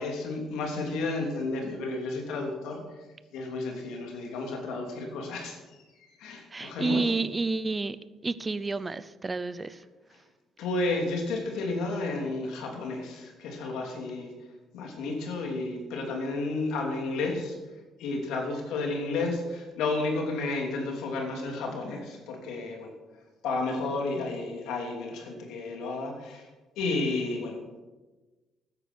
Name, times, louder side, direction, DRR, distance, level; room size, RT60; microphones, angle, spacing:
voice 1, 0.0-2.8 3.3-5.6 6.0-7.0 10.6-14.3 14.7-17.6 18.0-22.9 23.4-26.5 26.8-27.6, left 3 dB, 80° left, 2 dB, 3.0 m, -32 dB
voice 2, 6.5-8.0 8.2-9.8, right 3 dB, 25° right, 15 dB, 0.7 m, -30 dB
13.5 x 9.9 x 6.2 m, 1.2 s
cardioid pair, 85°, 0 cm